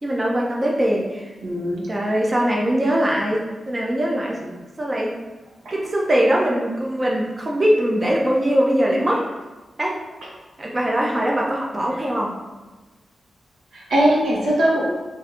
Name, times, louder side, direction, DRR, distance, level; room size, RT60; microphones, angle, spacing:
voice 1, 0.0-1.3 1.9-5.1 5.7-9.2 9.8-9.9 10.6-12.3, equal, 20° right, -2 dB, 0.5 m, -21 dB
voice 2, 1.4-1.9 5.6-5.7 10.2-10.3 13.7-14.9, right 1 dB, 85° right, -3 dB, 1.0 m, -20 dB
3.6 x 2.5 x 4.2 m, 1.2 s
wide cardioid pair, 150°, 0 cm